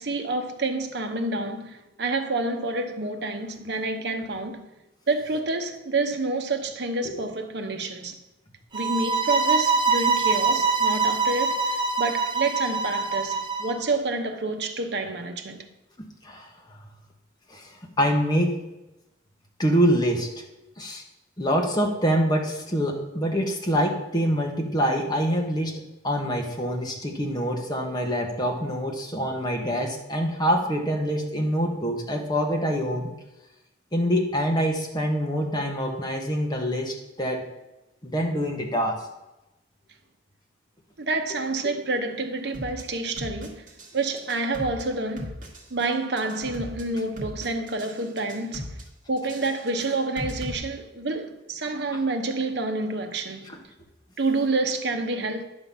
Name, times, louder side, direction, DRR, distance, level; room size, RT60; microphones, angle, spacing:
voice 1, 0.0-4.6 5.1-8.2 8.7-15.6 41.0-43.7 43.9-45.3 45.7-48.7 49.1-53.5 54.2-55.4, right 3 dB, 65° right, 0.9 m, -28 dB
sound 1, 8.7-13.7, right 4 dB, 25° right, 0.7 m, -24 dB
voice 2, 16.2-16.8 17.5-18.6 19.6-20.3 20.8-21.0 21.4-25.7 26.0-33.1 33.9-37.4 38.0-39.0 41.6-41.7 53.5-53.6, equal, 20° left, 1.2 m, -25 dB
sound 2, 42.5-42.8 43.2-43.9 44.2-44.8 45.2-45.8 46.2-46.8 47.2-47.9 48.2-48.8 49.2-50.5, equal, 45° right, 1.8 m, -37 dB
10.5 x 3.9 x 7.0 m
head